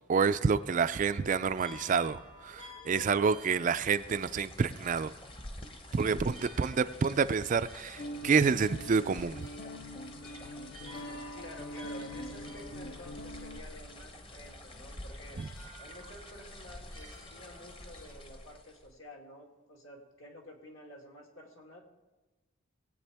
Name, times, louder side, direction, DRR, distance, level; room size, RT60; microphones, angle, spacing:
voice 1, 0.1-5.1 5.9-9.5 15.4-15.5, right 5 dB, 35° right, 12 dB, 0.3 m, -28 dB
sound 1, 0.8-18.2, left 2 dB, 90° left, 4.8 m, -54 dB
sound 2, 3.6-19.0, left 1 dB, 25° left, 0.9 m, -49 dB
voice 2, 6.0-6.4 10.8-15.4 15.8-21.8, left 1 dB, 70° left, 0 dB, 2.5 m, -51 dB
Guitar, 8.0-13.6, equal, 45° left, 0.6 m, -43 dB
20.0 x 8.5 x 3.4 m, 1.2 s
head